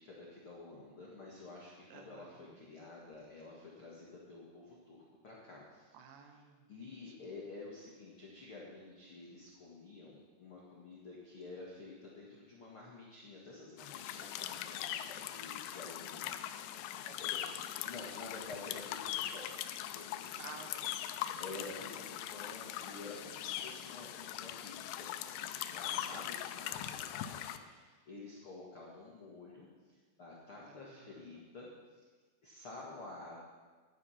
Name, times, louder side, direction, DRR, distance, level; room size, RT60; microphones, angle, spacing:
voice 1, 0.0-6.0 6.7-17.3 17.8-19.5 19.8-20.4 21.1-32.1 32.4-33.5, left 3 dB, 65° left, -4 dB, 1.3 m, -50 dB
voice 2, 1.9-2.6 5.9-7.2 17.0-17.7 20.4-21.0 25.8-26.4 30.6-31.4, right 6 dB, 75° right, 5 dB, 3.0 m, -55 dB
sound 1, 13.8-27.6, left 11 dB, 90° left, 3.1 m, -41 dB
12.0 x 9.9 x 5.8 m, 1.4 s
omnidirectional pair, 5.5 m